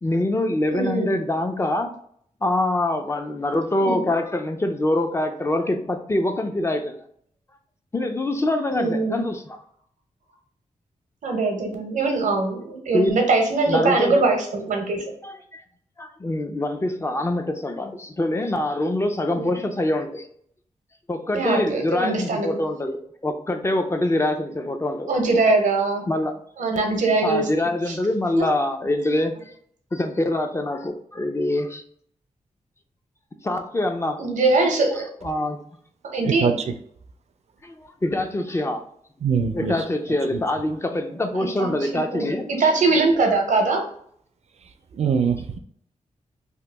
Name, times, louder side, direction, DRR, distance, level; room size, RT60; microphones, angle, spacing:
voice 1, 0.0-1.9 2.4-7.0 7.9-9.6 12.9-13.2 13.7-14.2 15.2-15.6 16.0-20.3 21.1-25.1 26.1-26.3 27.2-29.3 29.9-31.8 33.4-34.2 35.2-35.6 37.6-38.8 39.5-42.7, left 1 dB, 20° left, 5 dB, 0.4 m, -24 dB
voice 2, 0.7-1.1 3.8-4.1 8.7-9.3 11.2-15.0 19.3-19.7 21.3-22.6 25.1-26.0 26.6-27.5 27.9-28.0 28.4-28.5 34.2-35.1 36.0-36.6 41.3-43.8, right 3 dB, 90° right, 3 dB, 0.7 m, -22 dB
voice 3, 39.2-39.8 45.0-45.6, right 6 dB, 60° right, 8 dB, 0.4 m, -22 dB
2.9 x 2.3 x 3.3 m, 0.64 s
wide cardioid pair, 95°, 13 cm